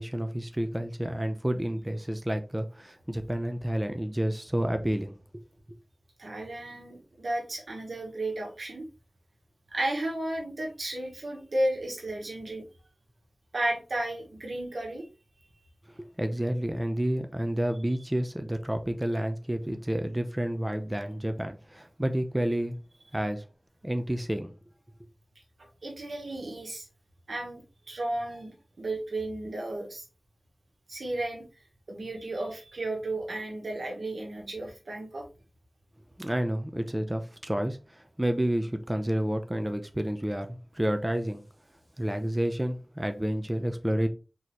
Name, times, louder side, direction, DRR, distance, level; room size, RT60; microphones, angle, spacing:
voice 1, 0.0-5.4 16.0-22.8 23.1-23.4 23.8-24.5 36.2-41.4 42.0-44.1, right 1 dB, 20° right, 0.7 m, -30 dB
voice 2, 6.2-8.8 9.7-12.6 13.5-15.1 25.8-26.9 27.3-27.6 27.9-30.0 30.9-31.4 31.9-35.3, right 1 dB, 85° right, 1.4 m, -33 dB
4.3 x 3.8 x 3.1 m
wide cardioid pair, 45°, 0 cm